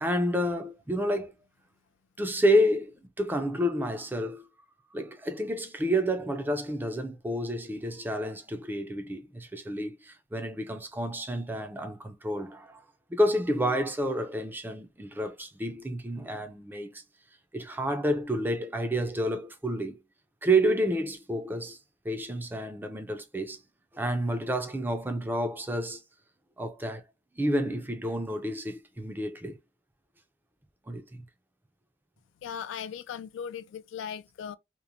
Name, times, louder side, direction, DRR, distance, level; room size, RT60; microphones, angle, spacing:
voice 1, 0.0-1.3 2.2-4.5 4.9-12.8 13.1-17.0 17.5-20.0 20.4-21.8 22.0-23.6 23.9-26.0 26.6-27.0 27.4-29.6 30.9-31.2, equal, 10° right, 0.4 m, -29 dB
voice 2, 32.4-34.6, left 7 dB, 80° left, 0.3 m, -38 dB
2.9 x 2.1 x 2.5 m
head